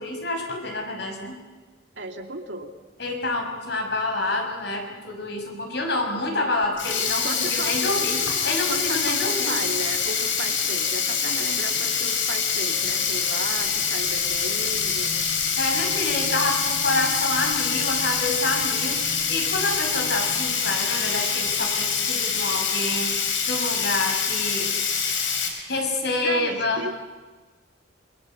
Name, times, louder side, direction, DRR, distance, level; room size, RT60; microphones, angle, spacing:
voice 1, 0.0-1.4 3.0-9.6 15.6-23.1 23.5-24.7 25.7-26.9, left 2 dB, 60° left, 3 dB, 5.9 m, -27 dB
voice 2, 2.0-2.7 7.2-7.9 8.7-15.2 26.2-26.9, right 2 dB, 65° right, 4 dB, 2.3 m, -34 dB
Sink (filling or washing), 6.6-25.5, left 6 dB, 80° left, 5.2 m, -25 dB
sound 1, 13.5-21.2, right 1 dB, 40° right, 3.4 m, -43 dB
27.5 x 24.0 x 8.2 m, 1.3 s
head